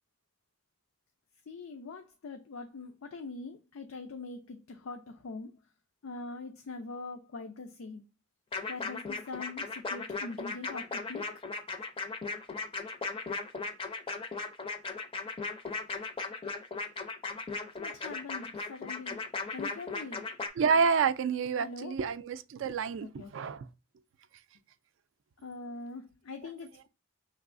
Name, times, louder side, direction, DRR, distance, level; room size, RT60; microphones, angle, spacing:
voice 1, 1.5-5.5 6.0-8.0 8.7-11.3 17.8-19.2 19.5-20.3 21.6-22.0 23.0-23.5 25.4-26.9, left 3 dB, 85° left, 0.5 m, -43 dB
sound 1, 8.5-20.5, left 4 dB, 25° left, 0.4 m, -37 dB
voice 2, 20.6-23.1 23.3-23.7, right 5 dB, 65° right, 0.3 m, -28 dB
5.3 x 3.2 x 2.5 m
head